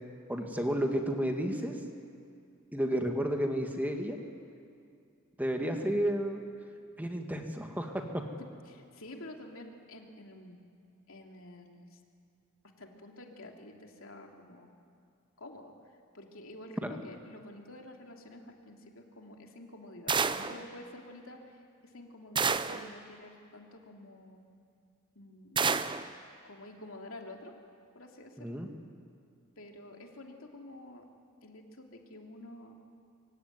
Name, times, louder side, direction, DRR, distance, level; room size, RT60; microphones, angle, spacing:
voice 1, 0.3-1.8 2.7-4.2 5.4-6.4 7.0-8.2 16.8-17.0 28.4-28.7, equal, 10° right, 3 dB, 1.9 m, -31 dB
voice 2, 8.4-10.6 11.1-12.0 12.8-14.7 15.4-15.7 16.1-24.4 25.1-25.7 26.4-27.6 27.9-28.6 29.6-31.1 31.4-32.7, left 1 dB, 75° left, 2 dB, 3.0 m, -49 dB
sound 1, 20.1-20.6 22.4-22.9 25.6-26.1, right 5 dB, 25° right, 0.7 m, -29 dB
24.5 x 24.0 x 9.5 m, 2.3 s
head